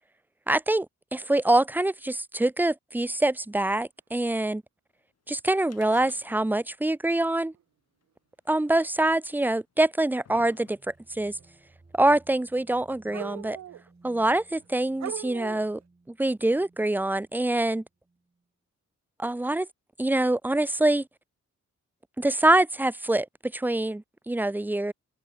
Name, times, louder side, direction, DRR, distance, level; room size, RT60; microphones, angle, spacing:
voice 1, 0.5-0.9 1.1-4.6 5.3-7.5 8.5-10.8 11.1-11.4 11.9-13.6 14.0-15.8 16.1-17.8 19.2-19.7 20.0-21.0 22.2-24.9, right 1 dB, 5° right, 0.6 m, -25 dB
sound 1, 5.6-6.7 6.9-7.0 8.0-8.1 9.0-9.1 9.8-11.1 12.0-12.1, left 7 dB, 55° left, 2.1 m, -53 dB
sound 2, 6.0-6.1 7.6-7.7 8.7-8.9 11.4-11.5 13.1-13.9 14.6-14.7 15.0-15.8, right 11 dB, 65° right, 0.6 m, -39 dB
sound 3, 10.8-18.4, right 3 dB, 20° right, 4.1 m, -59 dB
open air
wide cardioid pair, 150°, 30 cm